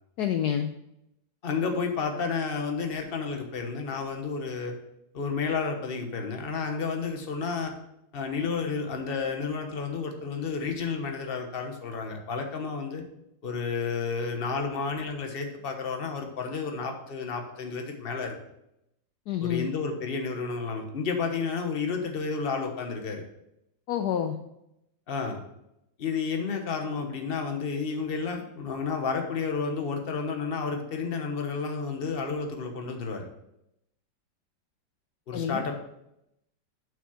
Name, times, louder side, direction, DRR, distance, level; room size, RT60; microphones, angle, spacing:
voice 1, 0.2-0.7 19.3-19.7 23.9-24.4 35.3-35.6, left 9 dB, 70° left, 7 dB, 1.0 m, -28 dB
voice 2, 1.4-4.7 5.1-7.7 8.1-13.0 13.4-18.4 19.4-23.2 25.1-25.4 26.0-33.3 35.3-35.7, left 5 dB, 35° left, 4 dB, 1.2 m, -31 dB
7.3 x 6.0 x 5.7 m, 0.82 s
omnidirectional pair, 2.0 m